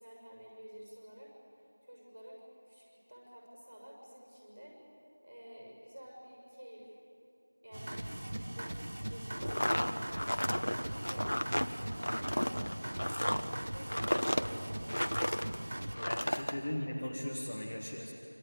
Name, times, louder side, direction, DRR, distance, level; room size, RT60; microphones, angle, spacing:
voice 1, 0.0-2.4 2.6-4.8 5.2-6.9 7.6-8.1 8.5-12.6 12.9-14.7 15.9-16.4, equal, 35° right, -1 dB, 6.6 m, -52 dB
sound 1, 7.7-15.9, right 1 dB, 15° right, 0.6 m, -40 dB
sound 2, 9.4-15.6 15.9-16.5, equal, 70° left, 1.3 m, -33 dB
voice 2, 16.1-18.1, left 1 dB, 10° left, -3 dB, 0.9 m, -38 dB
26.0 x 25.5 x 8.7 m, 2.8 s
figure-of-eight pair, 180°, 0 cm